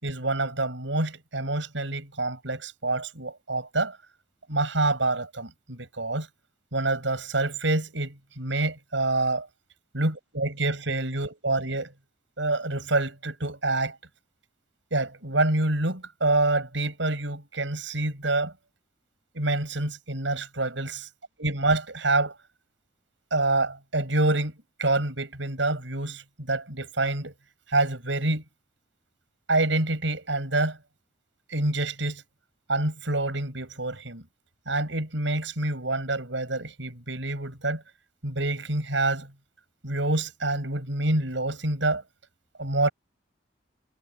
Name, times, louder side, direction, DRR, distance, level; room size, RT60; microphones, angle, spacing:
voice 1, 0.0-4.0 4.5-6.3 6.7-9.4 9.9-11.9 12.4-14.0 14.9-18.5 19.3-21.1 21.4-22.3 23.3-24.5 24.8-27.3 27.7-28.4 29.5-30.8 31.5-32.2 32.7-34.2 34.7-37.8 38.2-39.3 39.8-42.0 42.6-42.9, right 2 dB, 85° right, 6.6 m, -27 dB
head